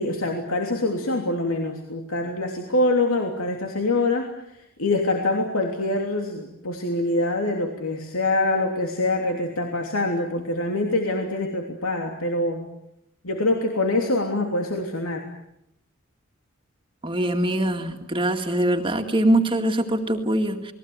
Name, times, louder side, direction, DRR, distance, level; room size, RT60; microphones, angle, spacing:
voice 1, 0.0-4.3 4.8-12.6 13.2-15.2, left 2 dB, 80° left, 3 dB, 3.1 m, -25 dB
voice 2, 17.0-20.7, right 1 dB, 25° right, 4 dB, 2.1 m, -23 dB
29.0 x 20.5 x 9.5 m, 0.78 s
head